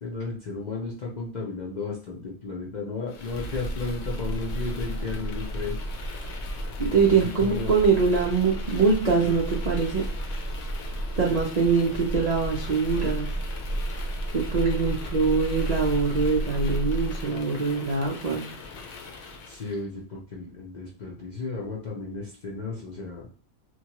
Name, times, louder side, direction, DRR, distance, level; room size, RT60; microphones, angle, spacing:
voice 1, 0.0-5.8 7.1-7.7 19.5-23.3, left 3 dB, 50° left, -3 dB, 0.5 m, -34 dB
sound 1, 3.1-19.8, right 1 dB, 70° left, 0.9 m, -32 dB
voice 2, 6.8-10.0 11.2-13.3 14.3-18.4, right 5 dB, 85° right, -2 dB, 0.3 m, -23 dB
2.9 x 2.2 x 2.9 m, 0.41 s
omnidirectional pair, 1.4 m